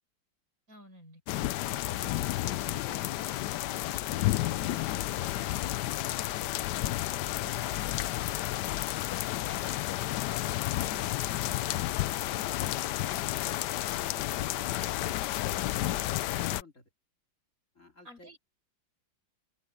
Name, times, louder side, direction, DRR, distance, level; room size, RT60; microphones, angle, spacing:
voice 1, 0.7-1.2 18.0-18.4, left 1 dB, 45° right, 7.5 m, -51 dB
sound 1, 1.3-16.6, left 15 dB, 70° left, 1.0 m, -31 dB
voice 2, 1.6-3.4 16.2-16.9 17.7-18.3, left 2 dB, 40° left, 2.9 m, -54 dB
open air
omnidirectional pair, 2.1 m